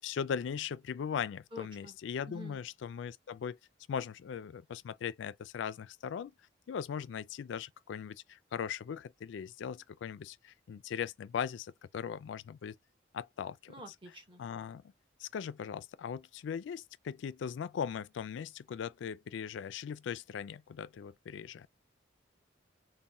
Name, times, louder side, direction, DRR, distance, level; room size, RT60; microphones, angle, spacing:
voice 1, 0.0-3.6 3.9-6.3 6.7-12.8 13.1-13.7 14.4-14.8 15.2-21.7, left 7 dB, 75° left, 0.3 m, -39 dB
voice 2, 1.5-2.0 2.2-2.6 13.7-14.4, equal, 25° right, 0.9 m, -48 dB
4.1 x 2.1 x 3.4 m
head